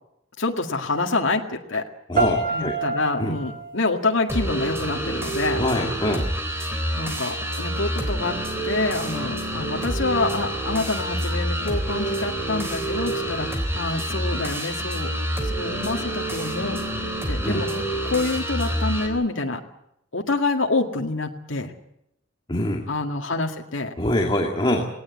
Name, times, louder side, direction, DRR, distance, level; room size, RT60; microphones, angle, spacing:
voice 1, 0.4-1.8 2.5-5.7 6.9-8.4 8.6-15.1 15.4-19.6 20.1-21.7 22.9-23.9, left 3 dB, 75° left, 2 dB, 2.0 m, -27 dB
voice 2, 2.1-2.7 3.2-3.3 5.6-6.3 17.4-17.6 22.5-22.8 24.0-24.9, left 1 dB, 25° left, 1 dB, 2.4 m, -24 dB
sound 1, 2.2-5.2, right 3 dB, 45° right, 2.0 m, -29 dB
sound 2, 4.3-19.1, right 1 dB, 10° right, 3.8 m, -27 dB
19.0 x 18.5 x 9.4 m, 0.79 s
head